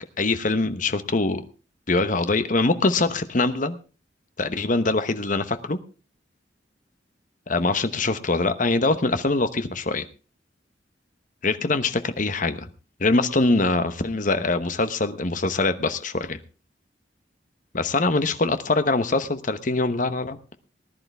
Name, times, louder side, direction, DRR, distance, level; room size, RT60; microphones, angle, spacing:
voice 1, 0.2-1.4 1.9-3.8 4.4-5.8 7.5-10.0 11.4-12.7 13.0-16.4 17.7-20.4, left 3 dB, 45° left, 11 dB, 1.0 m, -23 dB
19.5 x 11.0 x 3.4 m, 0.34 s
head